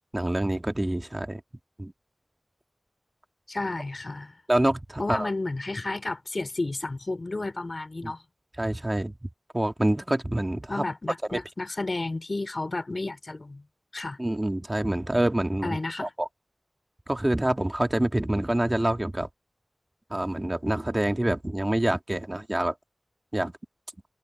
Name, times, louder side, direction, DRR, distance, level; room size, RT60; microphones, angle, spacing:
voice 1, 0.1-1.4 1.8-1.9 4.5-5.3 8.0-8.1 8.6-9.1 9.5-10.8 11.3-11.4 14.2-16.3 17.1-19.3 20.1-22.7 23.3-23.5, right 1 dB, 25° right, 1.7 m, -26 dB
voice 2, 3.5-4.4 5.0-8.2 10.7-13.6 13.9-14.2 15.6-16.1, left 2 dB, 55° left, 3.5 m, -32 dB
wide cardioid pair, 55°, 0 cm